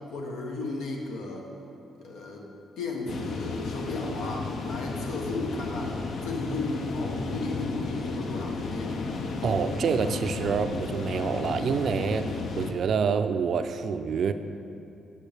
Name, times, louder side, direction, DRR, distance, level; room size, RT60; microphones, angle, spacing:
voice 1, 0.1-1.4 2.0-2.5 2.8-6.0 6.2-9.0, left 2 dB, 85° left, 0 dB, 1.1 m, -34 dB
sound 1, 3.1-12.7, left 4 dB, 60° left, 0.6 m, -33 dB
voice 2, 9.4-14.3, right 6 dB, 60° right, 9 dB, 0.4 m, -27 dB
8.3 x 6.8 x 3.4 m, 2.7 s
cardioid pair, 90°, 0 cm